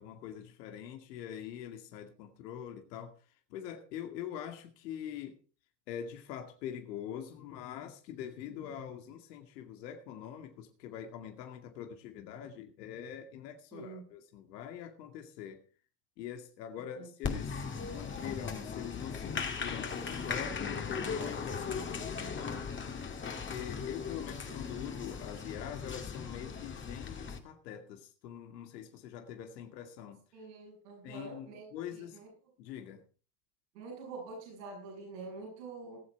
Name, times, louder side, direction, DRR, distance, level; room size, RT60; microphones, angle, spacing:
voice 1, 0.0-3.1 3.5-5.4 5.9-15.6 16.2-17.7 17.9-22.6 23.2-30.2 31.0-32.2 32.6-33.0, left 9 dB, 80° left, 2.3 m, -44 dB
voice 2, 13.7-14.1 17.0-17.1 24.5-24.7 30.3-32.3 33.7-36.0, right 3 dB, 85° right, 7.5 m, -46 dB
Applause, 17.2-27.4, left 5 dB, 25° left, 2.4 m, -38 dB
19.0 x 7.9 x 4.7 m
supercardioid pair, 105°, 49 cm